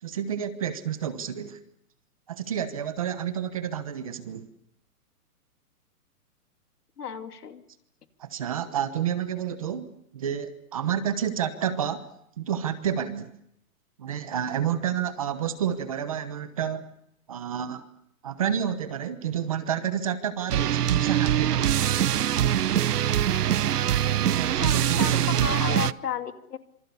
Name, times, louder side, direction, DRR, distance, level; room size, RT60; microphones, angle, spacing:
voice 1, 0.0-1.6 2.3-4.5 8.2-9.9 10.1-12.1 12.4-13.3 14.0-16.9 17.3-17.8 18.2-21.7 24.1-25.5, right 9 dB, 25° right, 12 dB, 1.0 m, -30 dB
voice 2, 7.0-7.6 24.6-26.6, left 7 dB, 80° left, 7 dB, 2.7 m, -33 dB
sound 1, 20.5-25.9, right 10 dB, 80° right, 0.9 m, -23 dB
27.0 x 25.0 x 6.9 m, 0.75 s
hypercardioid pair, 180°, 46 cm